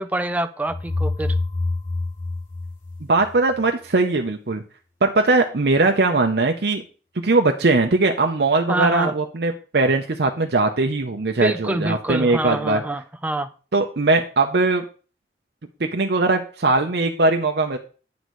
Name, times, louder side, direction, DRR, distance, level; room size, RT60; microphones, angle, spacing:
voice 1, 0.0-1.3 8.7-9.1 11.4-13.5, right 2 dB, 10° right, 0.5 m, -25 dB
sound 1, 0.7-3.6, left 2 dB, 45° left, 2.5 m, -26 dB
voice 2, 3.1-4.6 5.0-6.8 7.2-12.8 13.7-14.8 15.8-17.8, right 3 dB, 70° right, 0.7 m, -20 dB
9.5 x 4.0 x 6.2 m
head